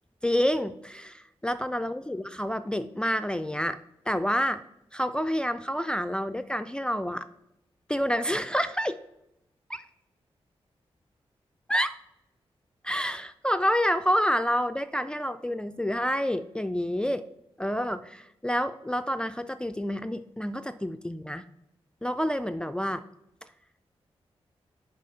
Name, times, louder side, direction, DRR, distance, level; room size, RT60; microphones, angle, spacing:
voice 1, 0.2-3.8 4.1-4.6 4.9-7.3 7.9-9.0 9.7-9.8 11.7-12.0 12.8-17.2 17.6-21.4 22.0-23.0, equal, 10° left, 11 dB, 0.3 m, -28 dB
6.3 x 4.7 x 5.6 m, 0.85 s
cardioid pair, 55°, 11 cm